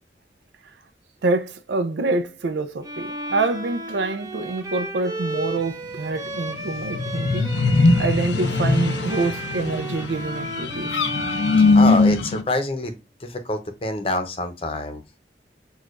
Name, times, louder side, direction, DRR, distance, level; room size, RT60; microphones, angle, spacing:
voice 1, 1.2-7.5 8.0-10.9, right 3 dB, 85° right, 0.5 m, -26 dB
Bowed string instrument, 2.8-12.6, right 1 dB, 20° right, 0.6 m, -33 dB
sound 1, 6.5-12.4, left 3 dB, 85° left, 0.5 m, -20 dB
voice 2, 11.7-13.0 13.2-15.0, left 2 dB, 30° left, 0.7 m, -26 dB
6.2 x 2.4 x 2.5 m
head